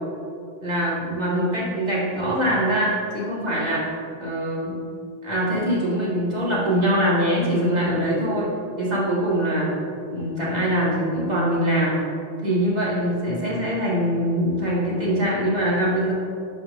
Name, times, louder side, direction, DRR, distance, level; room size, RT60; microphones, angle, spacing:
voice 1, 0.6-3.8 4.2-4.8 5.2-8.5 8.8-9.7 10.1-12.0 12.4-16.1, equal, 40° right, -8 dB, 1.9 m, -23 dB
11.5 x 4.4 x 2.5 m, 2.5 s
omnidirectional pair, 1.1 m